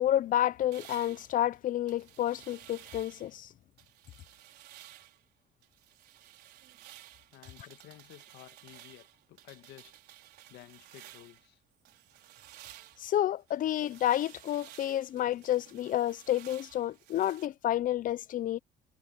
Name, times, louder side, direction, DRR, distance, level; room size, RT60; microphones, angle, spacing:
voice 1, 0.0-3.5 13.0-18.6, left 12 dB, 55° left, 0.6 m, -30 dB
sound 1, 0.7-3.4 3.8-5.2 5.6-11.5 11.8-17.5, right 14 dB, 75° right, 4.2 m, -54 dB
voice 2, 7.3-10.0 10.5-11.6, left 15 dB, 85° left, 1.8 m, -53 dB
cardioid pair, 110°, 17 cm